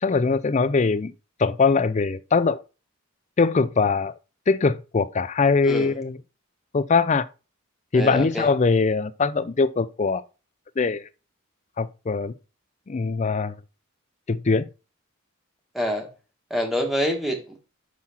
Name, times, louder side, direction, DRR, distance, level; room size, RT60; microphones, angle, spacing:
voice 1, 0.0-1.1 1.4-2.6 3.4-4.1 4.5-6.2 6.7-7.3 7.9-10.2 10.8-11.1 11.8-12.3 12.9-13.6 14.3-14.7, left 4 dB, 35° left, 0.4 m, -22 dB
voice 2, 5.6-5.9 7.9-8.5 15.7-16.1 16.5-17.6, equal, ahead, 1.4 m, -26 dB
6.2 x 5.7 x 4.2 m
head